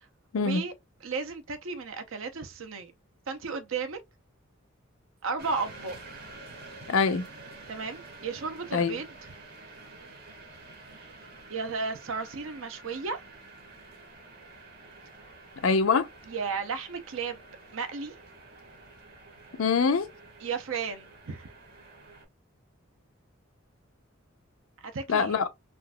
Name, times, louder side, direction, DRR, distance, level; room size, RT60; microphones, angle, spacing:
voice 1, 0.4-0.7 1.0-2.9 3.3-4.0 5.2-6.0 7.7-9.1 11.5-13.2 16.3-17.4 17.7-18.1 20.4-21.5 24.8-25.4, right 4 dB, 75° right, 0.7 m, -34 dB
sound 1, 5.4-22.2, right 3 dB, 50° right, 1.6 m, -49 dB
voice 2, 6.9-7.3 8.7-9.0 15.6-16.1 19.6-20.1 25.1-25.5, left 5 dB, 80° left, 0.5 m, -24 dB
3.8 x 2.4 x 2.2 m
head